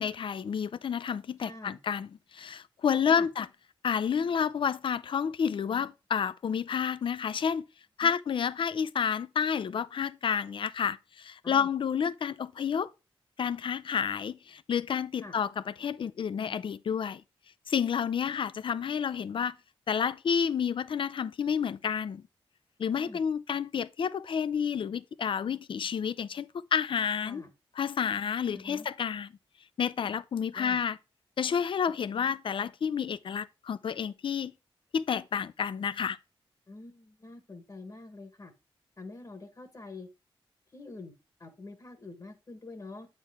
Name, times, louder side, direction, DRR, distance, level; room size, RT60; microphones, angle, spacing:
voice 1, 0.0-2.1 2.3-3.5 3.8-7.6 8.0-12.9 13.4-17.2 17.7-19.6 19.9-22.2 22.8-27.4 27.8-29.3 29.8-31.0 31.4-34.5 34.9-36.2, left 7 dB, 60° left, 0.4 m, -30 dB
voice 2, 1.4-1.8 2.9-3.3 8.0-8.1 11.4-11.7 15.2-15.4 22.9-23.2 27.2-27.5 28.5-28.9 30.5-30.8 36.7-38.5 39.0-40.1 40.7-41.1 41.4-43.1, left 2 dB, 35° left, 1.2 m, -45 dB
8.1 x 4.6 x 3.5 m
cardioid pair, 75°, 10 cm